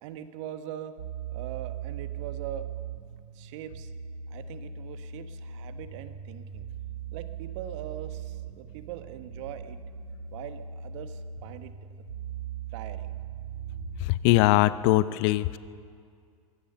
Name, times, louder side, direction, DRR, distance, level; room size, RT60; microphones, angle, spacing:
voice 1, 0.0-1.0 1.3-2.7 3.3-3.9 4.3-6.7 7.1-9.8 10.3-11.7 12.0-12.1 12.7-13.2, right 10 dB, 60° right, 10 dB, 1.3 m, -41 dB
sound 1, 1.0-14.8, right 7 dB, 80° right, 2.1 m, -39 dB
voice 2, 14.0-15.6, left 16 dB, 50° left, 16 dB, 0.7 m, -22 dB
23.0 x 17.0 x 6.8 m, 2.2 s
hypercardioid pair, 95°, 18 cm